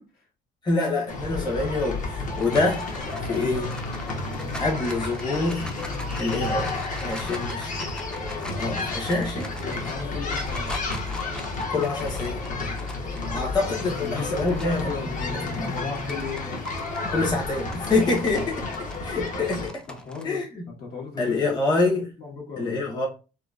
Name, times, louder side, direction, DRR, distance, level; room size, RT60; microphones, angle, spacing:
voice 1, 0.6-2.9 3.2-3.8 4.6-5.7 6.2-6.7 7.0-7.7 8.5-9.6 11.7-12.5 13.3-14.9 15.3-15.7 17.1-18.6 19.0-19.8 20.2-20.7 21.2-22.1 22.6-23.1, left 3 dB, 25° left, 0.9 m, -26 dB
sound 1, 1.1-19.7, left 3 dB, 50° left, 0.9 m, -31 dB
sound 2, 2.2-14.9 15.3-20.2, left 1 dB, 5° left, 0.4 m, -43 dB
voice 2, 6.0-6.5 7.1-7.5 9.6-11.0 13.1-13.5 13.9-17.1 19.9-20.4 20.7-21.5 22.2-22.7, left 4 dB, 65° left, 1.4 m, -36 dB
3.8 x 2.1 x 2.4 m
cardioid pair, 110°, 17 cm